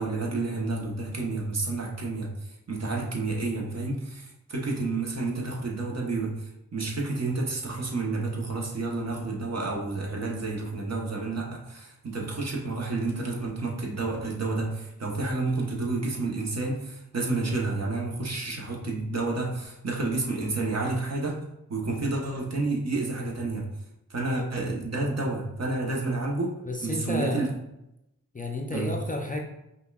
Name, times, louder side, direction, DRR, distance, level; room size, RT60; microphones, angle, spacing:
voice 1, 0.0-21.4 21.7-23.7 24.1-27.5 28.7-28.9, right 3 dB, 45° right, -1 dB, 0.9 m, -30 dB
voice 2, 26.7-27.6 28.3-29.4, left 1 dB, 20° left, 1 dB, 0.5 m, -31 dB
5.3 x 2.2 x 2.3 m, 0.85 s
cardioid pair, 40°, 36 cm